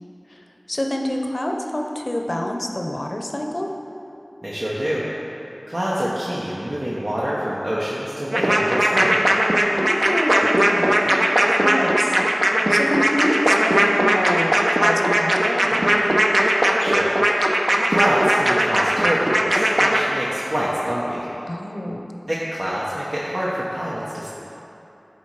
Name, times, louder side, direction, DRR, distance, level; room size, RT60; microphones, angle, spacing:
voice 1, 0.3-3.7 9.7-11.2 11.5-12.2 12.7-16.1 21.4-22.0, left 1 dB, 55° left, 2 dB, 0.7 m, -27 dB
voice 2, 4.4-5.0 5.7-9.2 16.8-17.2 17.9-21.3 22.3-24.3, equal, 65° right, -8 dB, 1.0 m, -26 dB
sound 1, 8.3-20.0, right 1 dB, 45° right, 0.7 m, -18 dB
10.5 x 4.2 x 4.7 m, 3.0 s
wide cardioid pair, 40°, 0 cm